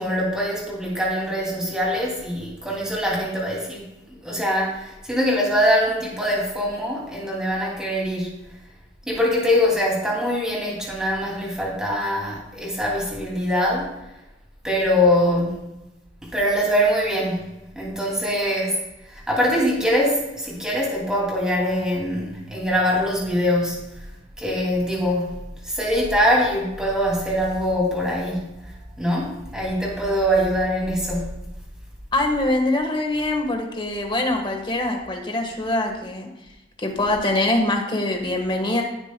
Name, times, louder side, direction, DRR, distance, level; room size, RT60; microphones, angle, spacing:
voice 1, 0.0-8.6 9.1-13.9 14.6-15.9 16.2-18.8 19.1-24.1 24.4-31.5, equal, 5° right, -3 dB, 2.6 m, -23 dB
voice 2, 32.1-36.3 36.8-38.8, left 2 dB, 25° left, 3 dB, 1.4 m, -23 dB
16.5 x 7.0 x 2.3 m, 0.98 s
head